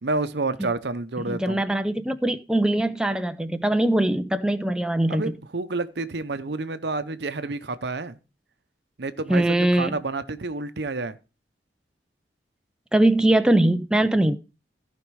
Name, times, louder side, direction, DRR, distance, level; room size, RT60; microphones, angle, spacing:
voice 1, 0.0-1.6 5.1-8.2 9.0-11.2, right 3 dB, 65° right, 0.8 m, -29 dB
voice 2, 1.3-5.3 9.3-10.0 12.9-14.4, right 1 dB, 5° right, 0.4 m, -22 dB
15.0 x 5.2 x 4.7 m
head